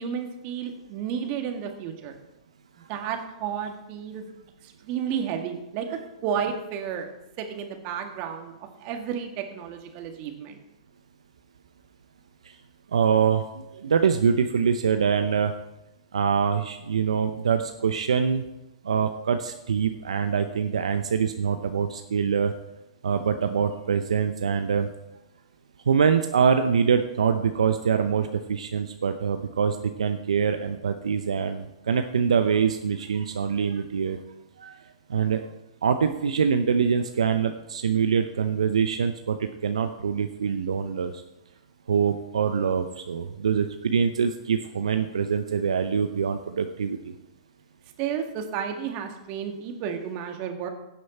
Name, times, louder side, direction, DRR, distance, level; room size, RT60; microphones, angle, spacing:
voice 1, 0.0-2.2 2.8-4.3 4.8-7.1 7.4-10.6 48.0-50.7, right 8 dB, 40° right, 4 dB, 1.8 m, -32 dB
voice 2, 12.9-13.4 13.8-15.5 16.1-18.5 18.8-22.5 23.0-24.9 25.9-34.2 34.6-34.7 35.1-35.4 35.8-41.1 41.9-47.0, right 6 dB, 80° right, 7 dB, 0.7 m, -24 dB
16.5 x 6.3 x 4.3 m, 0.93 s
hypercardioid pair, 120°, 3 cm